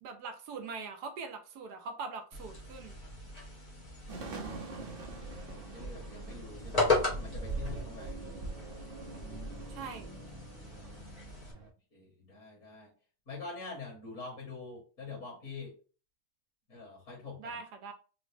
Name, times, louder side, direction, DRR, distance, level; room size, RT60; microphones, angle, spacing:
voice 1, 0.0-3.0 9.7-10.1 17.4-17.9, right 4 dB, 80° right, 1.3 m, -42 dB
sound 1, 2.3-11.5, left 3 dB, 30° left, 1.0 m, -37 dB
sound 2, 4.1-11.7, right 2 dB, 50° right, 0.6 m, -43 dB
voice 2, 5.1-5.5 5.7-8.3 10.7-11.3 11.9-12.9 13.3-15.7 16.7-17.6, left 3 dB, 50° left, 1.7 m, -46 dB
3.8 x 2.1 x 3.2 m
omnidirectional pair, 1.7 m